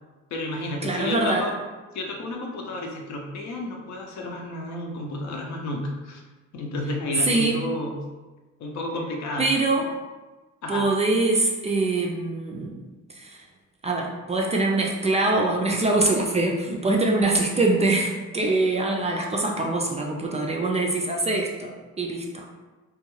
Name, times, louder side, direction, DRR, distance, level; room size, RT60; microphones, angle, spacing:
voice 1, 0.3-1.5 1.9-6.2 6.5-8.0 8.6-9.5 10.6-10.9, left 1 dB, 65° left, 1 dB, 0.6 m, -31 dB
voice 2, 0.8-1.4 7.2-7.6 9.4-9.9 10.7-12.8 13.2-13.4 13.8-22.4, right 2 dB, 20° right, 0 dB, 0.3 m, -23 dB
2.4 x 2.3 x 3.0 m, 1.2 s
cardioid pair, 90°, 30 cm